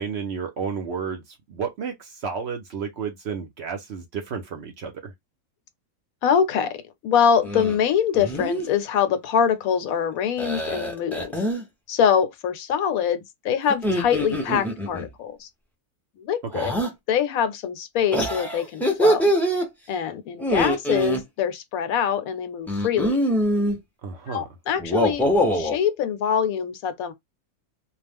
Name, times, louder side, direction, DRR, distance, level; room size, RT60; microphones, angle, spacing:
voice 1, 0.0-5.1 16.5-16.7 24.0-24.5, right 6 dB, 60° right, 0.7 m, -32 dB
voice 2, 6.2-6.7 7.0-11.4 11.9-15.5 16.2-16.7 17.1-19.3 19.9-23.2 24.3-25.3 25.5-27.1, left 7 dB, 85° left, 1.1 m, -24 dB
sound 1, 7.4-7.8 8.1-8.7 10.4-11.6 13.7-15.1 16.5-16.9 18.1-19.7 20.4-21.2 22.7-23.8 24.8-25.8, equal, 5° left, 0.3 m, -24 dB
2.4 x 2.1 x 3.3 m
omnidirectional pair, 1.5 m